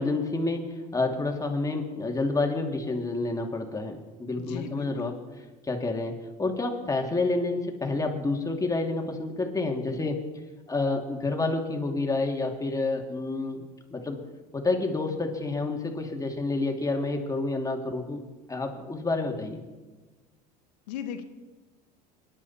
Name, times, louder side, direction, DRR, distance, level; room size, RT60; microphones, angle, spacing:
voice 1, 0.0-5.1 5.6-10.2 10.7-13.6 13.9-14.2 14.5-18.2 18.5-19.6, left 3 dB, 15° left, 2 dB, 2.8 m, -29 dB
voice 2, 4.4-5.2 20.9-21.2, left 8 dB, 80° left, 8 dB, 1.6 m, -37 dB
24.5 x 11.5 x 4.3 m, 1.3 s
hypercardioid pair, 80°, 21 cm